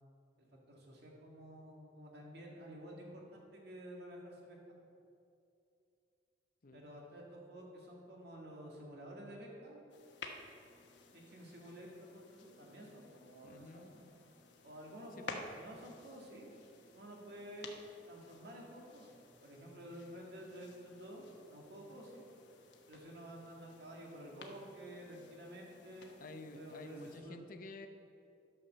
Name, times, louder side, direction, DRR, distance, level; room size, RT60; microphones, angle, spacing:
voice 1, 0.4-4.8 6.7-9.8 11.1-14.1 14.6-16.5 16.9-17.7 18.1-22.2 22.9-26.2 26.5-27.5, equal, 65° right, -1 dB, 2.0 m, -51 dB
sound 1, 9.9-27.2, left 3 dB, 80° left, 1.0 m, -55 dB
voice 2, 13.4-13.9 15.2-15.4 26.2-27.9, left 2 dB, 50° left, 7 dB, 0.7 m, -51 dB
12.0 x 5.6 x 6.8 m, 2.6 s
head